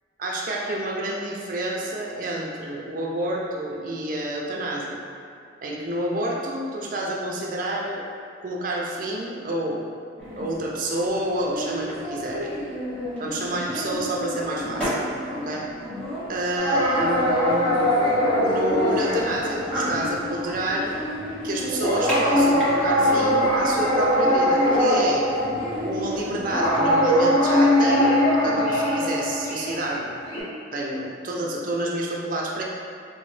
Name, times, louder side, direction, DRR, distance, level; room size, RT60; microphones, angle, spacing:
voice 1, 0.2-5.0 5.6-8.0 8.4-9.9 10.4-12.5 13.2-15.0 15.3-15.6 16.3-17.8 18.4-20.9 21.4-25.3 25.8-28.2 28.4-30.1 30.7-32.6, right 1 dB, 45° right, -2 dB, 0.5 m, -29 dB
sound 1, 10.2-26.9, equal, 5° left, 0.7 m, -32 dB
sound 2, 16.6-20.4 21.1-21.3 21.8-30.4, equal, 30° left, 1.0 m, -21 dB
3.9 x 2.1 x 3.1 m, 2.4 s
head